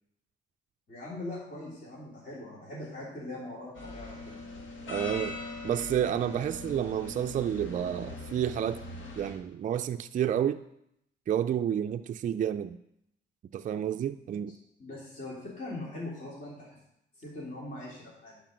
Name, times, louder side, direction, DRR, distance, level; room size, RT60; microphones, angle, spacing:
voice 1, 0.9-4.5 14.8-16.8 17.2-18.4, left 2 dB, 45° left, -7 dB, 3.4 m, -41 dB
sound 1, 3.7-9.3, left 2 dB, 85° left, 2.3 m, -41 dB
voice 2, 4.9-5.4 5.6-8.8 9.2-10.6 11.3-12.8 13.5-14.5, right 9 dB, 40° right, 7 dB, 0.4 m, -30 dB
11.0 x 5.0 x 5.2 m, 0.79 s
cardioid pair, 90°, 20 cm